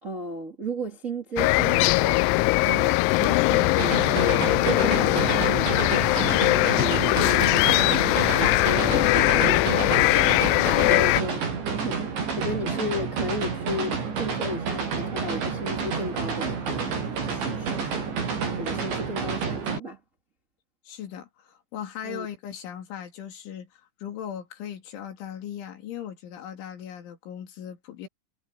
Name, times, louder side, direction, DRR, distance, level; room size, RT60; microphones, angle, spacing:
voice 1, 0.0-10.1 10.5-11.4 11.7-12.0 12.3-18.1 18.5-20.0 22.0-22.3, equal, 85° right, 0.7 m, -34 dB
sound 1, 1.4-11.2, left 21 dB, 85° left, 2.7 m, -21 dB
sound 2, 3.8-19.8, right 5 dB, 60° right, 7.8 m, -29 dB
voice 2, 20.9-28.1, left 9 dB, 65° left, 5.2 m, -38 dB
omnidirectional pair, 5.9 m